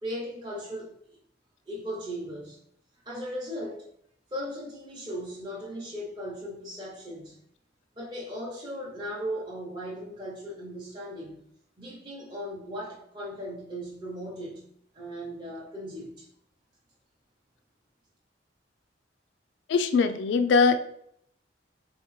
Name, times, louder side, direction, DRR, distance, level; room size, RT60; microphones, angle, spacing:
voice 1, 0.0-1.0 1.7-2.6 3.1-3.8 4.3-7.4 8.0-11.4 11.8-14.7 14.9-16.3, equal, 25° right, 0.7 m, -37 dB
voice 2, 19.7-20.8, left 4 dB, 70° left, 0.3 m, -21 dB
4.1 x 3.6 x 3.1 m
head